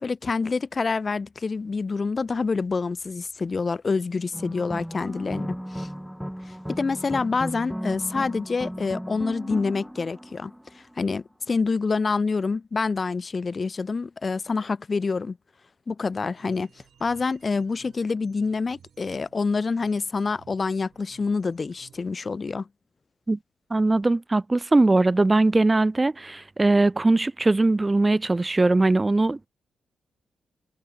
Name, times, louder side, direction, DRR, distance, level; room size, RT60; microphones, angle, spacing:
voice 1, 0.0-5.9 6.5-15.4 15.9-16.7 17.0-22.7, left 4 dB, 40° left, 0.8 m, -27 dB
sound 1, 4.3-10.9, equal, ahead, 7.2 m, -35 dB
sound 2, 16.4-22.0, right 8 dB, 70° right, 7.6 m, -56 dB
voice 2, 23.7-29.5, right 2 dB, 25° right, 0.4 m, -20 dB
cardioid pair, 60°, 0 cm